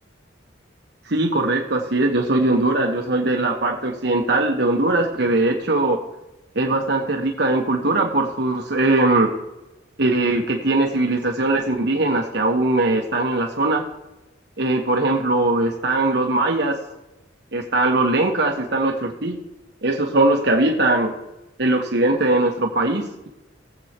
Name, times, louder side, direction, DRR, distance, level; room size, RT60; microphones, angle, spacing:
voice 1, 1.1-6.0 6.5-9.3 10.0-13.8 14.6-16.8 17.5-19.4 19.8-21.2 21.6-23.3, right 2 dB, 60° right, 2 dB, 1.2 m, -20 dB
19.5 x 7.9 x 2.9 m, 0.99 s
head